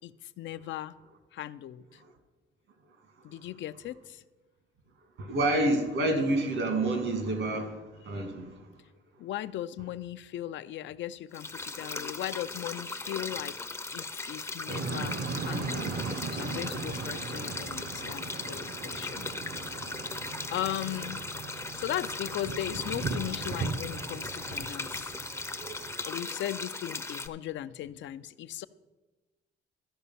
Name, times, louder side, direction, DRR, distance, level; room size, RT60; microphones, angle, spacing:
voice 1, 0.0-0.9 1.3-2.0 3.2-4.2 9.2-13.6 13.9-15.2 15.4-15.9 16.3-19.3 20.5-21.2 21.7-25.1 26.0-28.7, left 12 dB, 70° left, 14 dB, 0.4 m, -37 dB
voice 2, 5.2-8.7, right 2 dB, 75° right, 6 dB, 1.9 m, -28 dB
sound 1, 11.3-27.3, left 3 dB, 15° left, 0.5 m, -38 dB
sound 2, 14.7-26.0, right 4 dB, 50° right, 0.6 m, -38 dB
12.5 x 5.1 x 5.6 m, 1.2 s
cardioid pair, 90°, 20 cm